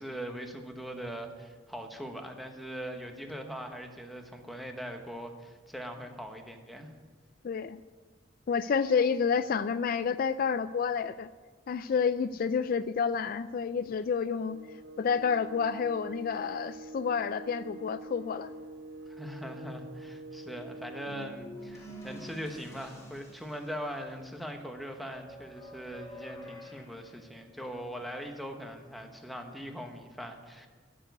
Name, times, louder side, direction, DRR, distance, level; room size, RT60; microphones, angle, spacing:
voice 1, 0.0-6.9 19.1-30.7, equal, ahead, 3 dB, 1.2 m, -41 dB
voice 2, 7.4-7.8 8.5-11.3 11.7-14.6 15.0-18.5, left 6 dB, 50° left, 13 dB, 0.3 m, -29 dB
sound 1, 14.3-21.3, right 2 dB, 70° right, 1.2 m, -45 dB
sound 2, 21.1-24.1 25.0-27.9, equal, 15° left, 2.4 m, -48 dB
12.5 x 7.0 x 9.5 m, 1.4 s
head